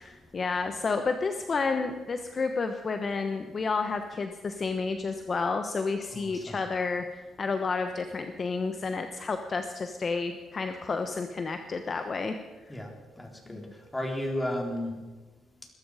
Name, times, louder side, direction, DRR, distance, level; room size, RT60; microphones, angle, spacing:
voice 1, 0.0-12.7 13.5-13.6, left 4 dB, 40° left, 7 dB, 1.1 m, -31 dB
voice 2, 6.1-6.6 12.7-12.9 13.2-13.6 13.9-14.9, left 1 dB, 10° left, 1 dB, 3.8 m, -33 dB
21.0 x 13.0 x 5.0 m, 1.3 s
cardioid pair, 90°, 0 cm